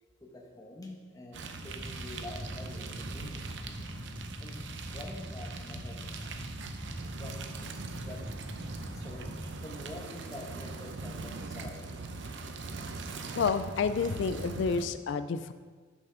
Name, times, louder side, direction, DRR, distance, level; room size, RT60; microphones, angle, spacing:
voice 1, 0.2-3.8 4.4-6.0 7.1-7.4 8.0-8.2 8.6-12.0, left 2 dB, 20° left, 0 dB, 1.0 m, -47 dB
sound 1, 1.3-14.8, right 3 dB, 65° right, 0.6 m, -42 dB
sound 2, 1.7-9.5, equal, ahead, 1.6 m, -42 dB
voice 2, 13.4-15.5, left 5 dB, 65° left, 11 dB, 0.3 m, -29 dB
7.1 x 5.6 x 5.7 m, 1.5 s
head